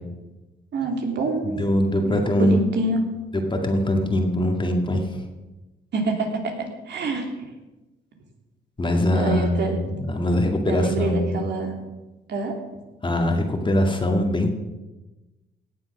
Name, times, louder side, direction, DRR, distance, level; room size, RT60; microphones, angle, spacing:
voice 1, 0.7-1.5 2.0-3.0 5.9-6.6 6.9-7.3 9.1-9.8 10.7-11.7 12.3-12.6, right 2 dB, 60° right, 2 dB, 2.9 m, -26 dB
voice 2, 1.4-2.6 3.3-5.2 8.8-11.4 13.0-14.5, left 1 dB, 25° left, 3 dB, 2.1 m, -22 dB
17.5 x 7.4 x 6.1 m, 1.1 s
cardioid pair, 90°, 20 cm